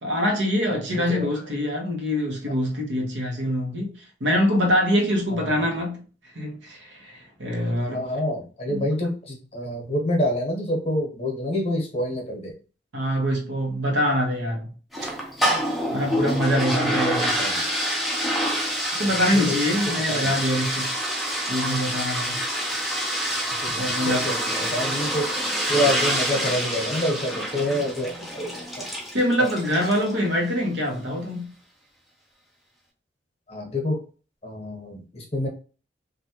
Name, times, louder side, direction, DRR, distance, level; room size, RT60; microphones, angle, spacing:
voice 1, 0.0-3.9 4.2-6.0 6.3-8.0 8.7-8.9 12.9-14.7 15.9-17.4 19.0-20.9 21.5-22.4 23.8-24.3 29.1-31.5, equal, 80° right, 1.0 m, -24 dB
voice 2, 0.9-1.3 5.3-5.6 7.7-12.5 15.9-17.6 19.3-19.6 20.1-20.3 23.6-25.3 25.7-28.6 29.4-29.5 33.5-34.0 34.4-35.5, left 1 dB, 30° left, 0.9 m, -28 dB
sound 1, 14.9-30.2, equal, ahead, 0.5 m, -27 dB
3.3 x 2.5 x 2.8 m
head